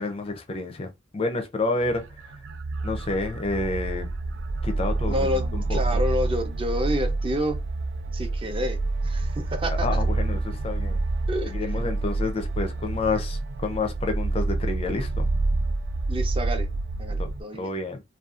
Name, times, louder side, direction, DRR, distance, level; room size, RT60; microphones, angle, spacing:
voice 1, 0.0-2.1 2.8-4.1 4.6-6.0 9.7-11.0 11.4-15.3 17.2-18.0, left 3 dB, 30° left, 0.4 m, -29 dB
sound 1, 1.8-17.4, right 2 dB, 90° right, 0.3 m, -28 dB
voice 2, 5.1-7.6 8.1-8.8 9.0-9.9 11.3-11.8 16.1-16.7 17.0-17.7, equal, 30° right, 0.6 m, -29 dB
2.6 x 2.2 x 2.4 m
head